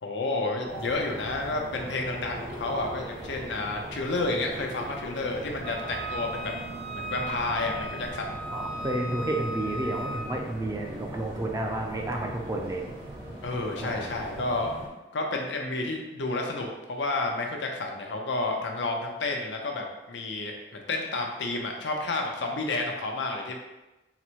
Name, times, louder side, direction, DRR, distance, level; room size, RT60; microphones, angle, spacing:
voice 1, 0.0-6.5 6.9-8.4 13.4-14.7 15.1-23.6, left 2 dB, 85° left, 1 dB, 0.6 m, -30 dB
sound 1, 0.7-14.9, right 1 dB, 60° right, 1.0 m, -40 dB
Wind instrument woodwind instrument, 5.6-10.3, right 1 dB, 75° right, 0.6 m, -36 dB
voice 2, 8.5-12.8 13.8-14.1, right 1 dB, 20° right, 1 dB, 0.4 m, -31 dB
4.0 x 2.1 x 4.5 m, 1.1 s
head